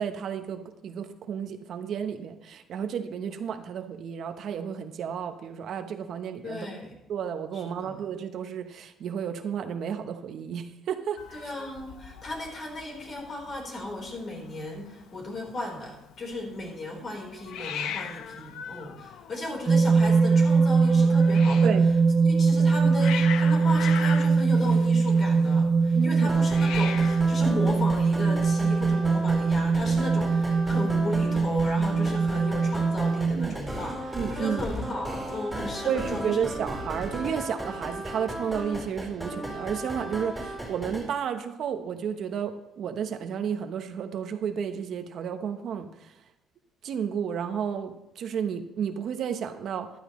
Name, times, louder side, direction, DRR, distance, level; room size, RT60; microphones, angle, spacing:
voice 1, 0.0-6.7 7.1-11.5 21.6-21.9 22.6-22.7 25.9-26.3 33.3-33.6 34.1-34.6 35.8-46.1 46.8-49.9, right 7 dB, 60° right, 7 dB, 0.9 m, -32 dB
voice 2, 6.4-6.9 7.5-8.0 11.3-21.7 22.2-36.4, left 1 dB, 40° left, 0 dB, 4.0 m, -35 dB
Hiss, 11.2-28.5, left 8 dB, 75° left, 0.7 m, -40 dB
sound 1, 19.7-33.5, right 4 dB, 30° right, 0.4 m, -22 dB
sound 2, 26.3-41.1, right 1 dB, ahead, 4.2 m, -36 dB
14.5 x 12.0 x 3.1 m, 0.86 s
cardioid pair, 120°, 0 cm